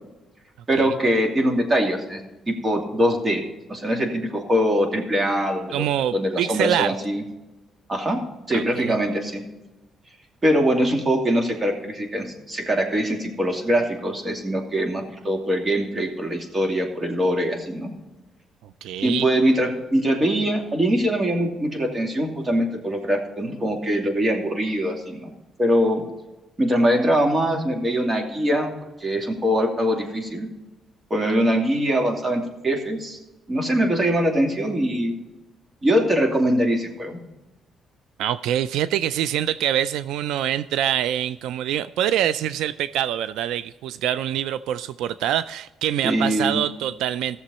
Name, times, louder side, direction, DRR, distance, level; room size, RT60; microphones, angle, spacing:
voice 1, 0.7-2.2 2.5-3.4 3.7-5.8 6.1-7.2 7.9-8.2 8.5-9.4 10.4-17.9 19.0-25.3 25.6-26.0 26.6-28.7 29.0-30.5 31.1-33.2 33.5-35.2 35.8-37.2 46.0-46.6, equal, 30° right, 2 dB, 2.5 m, -22 dB
voice 2, 5.7-6.9 8.5-9.0 18.8-19.3 38.2-47.4, right 11 dB, 90° right, 14 dB, 0.3 m, -25 dB
15.5 x 6.9 x 4.2 m, 1.1 s
cardioid pair, 90°, 0 cm